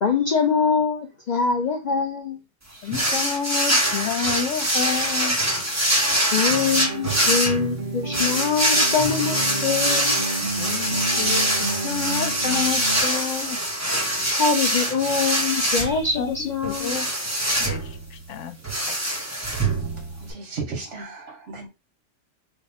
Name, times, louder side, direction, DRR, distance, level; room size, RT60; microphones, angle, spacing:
voice 1, 0.0-2.4 2.7-2.8 6.3-10.2 14.4-17.0, left 5 dB, 55° left, 0.5 m, -24 dB
voice 2, 2.8-5.4 10.5-13.6 16.2-16.3 16.6-17.1 17.6-18.6, left 7 dB, 80° left, 0.9 m, -29 dB
sound 1, 2.9-20.3, right 1 dB, 15° right, 0.9 m, -24 dB
sound 2, 6.5-13.0, right 2 dB, 50° right, 1.4 m, -31 dB
voice 3, 19.9-21.7, right 4 dB, 70° right, 1.6 m, -35 dB
3.4 x 2.2 x 4.1 m
omnidirectional pair, 1.3 m